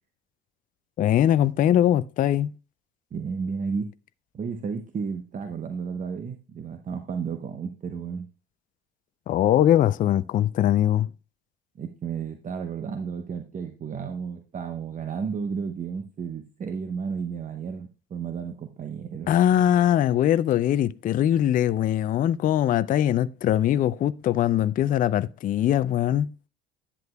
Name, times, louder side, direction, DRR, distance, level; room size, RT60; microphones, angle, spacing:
voice 1, 1.0-2.5 9.3-11.1 19.3-26.3, left 11 dB, 25° left, 0.4 m, -21 dB
voice 2, 3.1-3.9 4.3-8.3 11.8-19.3, right 6 dB, 25° right, 0.9 m, -32 dB
10.5 x 8.5 x 2.2 m
figure-of-eight pair, 65°, 31 cm